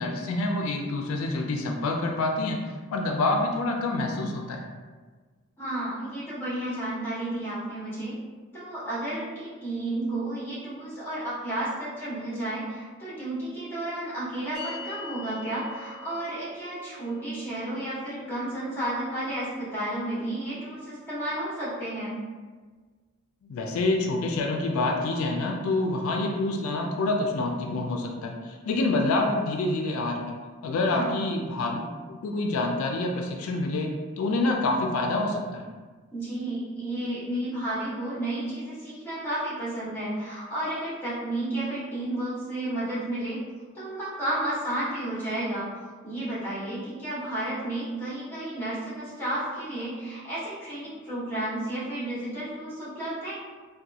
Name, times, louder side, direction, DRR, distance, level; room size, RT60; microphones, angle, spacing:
voice 1, 0.0-2.6 2.9-4.6 23.5-30.4 30.6-35.7, left 2 dB, 85° left, 2 dB, 0.3 m, -27 dB
voice 2, 5.6-8.1 8.5-22.2 30.8-31.2 36.1-43.4 43.7-53.4, right 1 dB, 10° left, -10 dB, 0.9 m, -32 dB
sound 1, 14.5-21.1, left 2 dB, 55° right, 0.9 m, -46 dB
2.8 x 2.2 x 2.4 m, 1.4 s
head